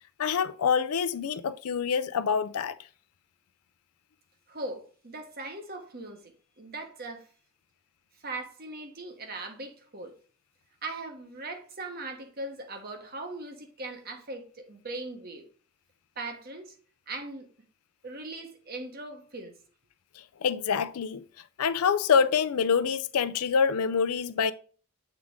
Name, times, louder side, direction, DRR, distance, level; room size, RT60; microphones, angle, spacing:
voice 1, 0.2-2.8 20.4-21.2 21.6-24.5, left 6 dB, 85° left, 0.4 m, -26 dB
voice 2, 4.5-7.3 8.2-10.1 10.8-15.4 16.2-16.7 17.1-17.5 18.0-19.5, right 2 dB, 45° right, 1.1 m, -39 dB
7.5 x 3.7 x 3.5 m
head